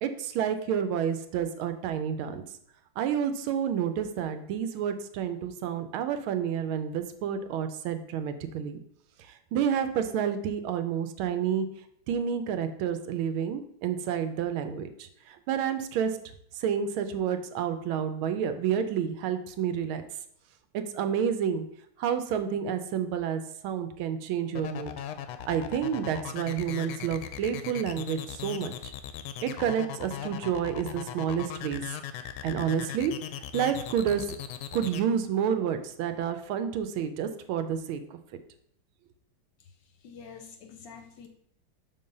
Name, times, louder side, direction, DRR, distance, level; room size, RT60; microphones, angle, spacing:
voice 1, 0.0-2.4 3.0-8.8 9.3-11.7 12.1-16.1 16.6-20.0 20.7-21.7 22.0-24.9 25.5-28.9 29.4-31.8 32.4-33.1 33.5-34.4 34.7-38.0, right 8 dB, 80° right, 9 dB, 1.4 m, -29 dB
sound 1, 24.5-35.0, left 10 dB, 85° left, 1.5 m, -38 dB
voice 2, 39.6-41.3, left 6 dB, 70° left, 5 dB, 1.2 m, -48 dB
6.0 x 3.9 x 5.2 m, 0.69 s
omnidirectional pair, 2.4 m